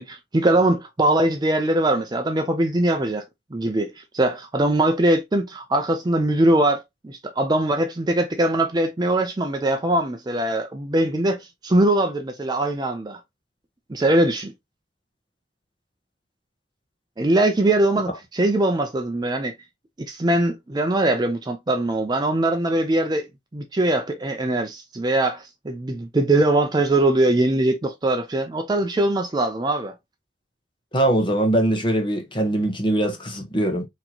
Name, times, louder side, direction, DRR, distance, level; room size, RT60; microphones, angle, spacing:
voice 1, 0.0-3.2 3.5-13.2 13.9-14.5 17.2-19.5 20.1-23.3 23.5-29.9, right 1 dB, 20° right, 0.4 m, -21 dB
voice 2, 30.9-33.9, right 1 dB, 25° left, 0.9 m, -22 dB
4.3 x 2.9 x 2.7 m
head